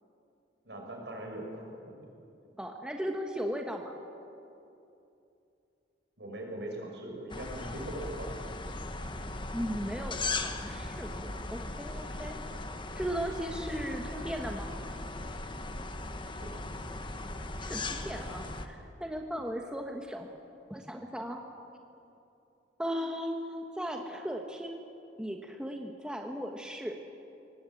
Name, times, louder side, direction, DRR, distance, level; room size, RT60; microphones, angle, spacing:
voice 1, 0.6-2.0 6.2-8.5 16.4-16.6, right 1 dB, 70° right, 0 dB, 6.0 m, -41 dB
voice 2, 2.6-3.9 9.5-12.4 12.9-14.7 17.6-20.3 20.7-21.4 22.8-24.8 25.2-27.0, equal, 5° right, 2 dB, 1.3 m, -37 dB
sound 1, 7.3-18.7, left 2 dB, 25° left, 1.3 m, -38 dB
23.5 x 19.0 x 8.6 m, 2.7 s
head